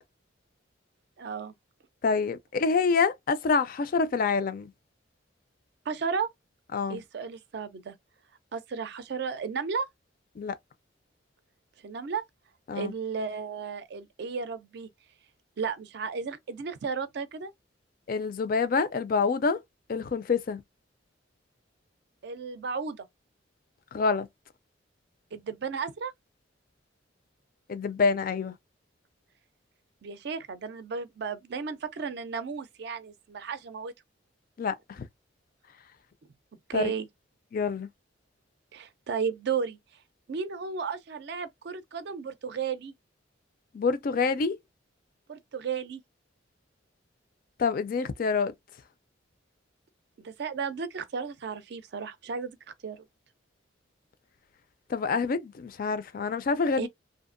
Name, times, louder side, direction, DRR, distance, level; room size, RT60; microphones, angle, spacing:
voice 1, 1.2-1.5 5.9-6.3 6.9-8.0 8.5-9.9 11.8-12.2 12.7-14.9 15.6-17.5 22.2-23.1 25.3-26.1 30.0-33.9 36.7-37.1 38.7-39.8 40.3-42.9 45.3-46.0 50.2-52.6 52.8-53.1 56.8-56.9, right 5 dB, 60° right, 0.4 m, -34 dB
voice 2, 2.0-4.7 6.7-7.0 10.4-10.6 12.7-12.9 18.1-19.6 19.9-20.6 23.9-24.3 27.7-28.5 34.6-35.1 36.7-36.9 37.5-37.9 43.7-44.6 47.6-48.5 54.9-56.9, left 4 dB, 45° left, 0.4 m, -27 dB
2.7 x 2.4 x 2.5 m
head